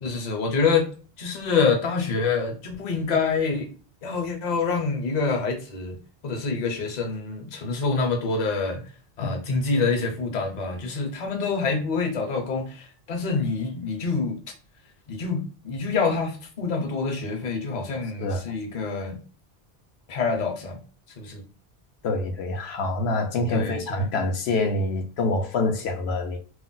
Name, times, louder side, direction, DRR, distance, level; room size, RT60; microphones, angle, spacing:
voice 1, 0.0-0.9 1.2-3.7 4.0-6.0 6.2-8.8 9.2-14.4 15.1-19.2 20.1-20.8 21.2-21.4 23.5-24.1, left 4 dB, 50° left, 0.7 m, -26 dB
voice 2, 22.0-26.4, left 2 dB, 85° left, 0.8 m, -26 dB
2.3 x 2.0 x 3.7 m
omnidirectional pair, 1.0 m